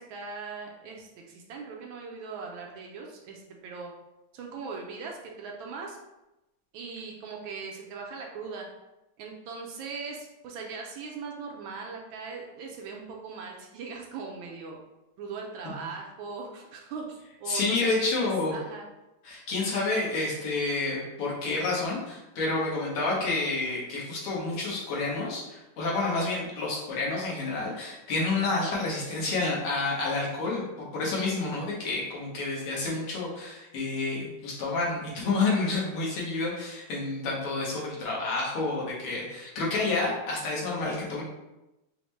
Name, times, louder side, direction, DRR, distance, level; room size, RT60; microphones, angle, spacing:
voice 1, 0.0-3.9 4.3-6.0 6.7-8.7 9.2-14.8 15.2-18.9, right 4 dB, 75° right, 0 dB, 1.3 m, -39 dB
voice 2, 17.5-18.5 19.2-41.2, left 3 dB, 85° left, -4 dB, 2.0 m, -29 dB
5.0 x 2.1 x 3.1 m, 0.97 s
omnidirectional pair, 2.4 m